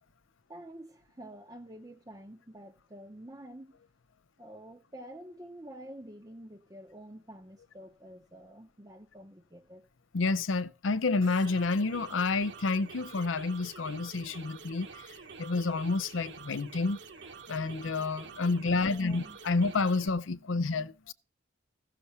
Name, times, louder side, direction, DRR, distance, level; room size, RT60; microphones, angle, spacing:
voice 1, 0.5-3.8 4.4-9.9 18.8-19.4, right 1 dB, 20° right, 0.7 m, -48 dB
voice 2, 10.1-14.9 15.4-17.0 17.5-21.1, left 3 dB, 90° left, 0.7 m, -29 dB
sound 1, 11.2-20.1, right 5 dB, 65° right, 1.1 m, -48 dB
15.5 x 6.6 x 5.7 m
head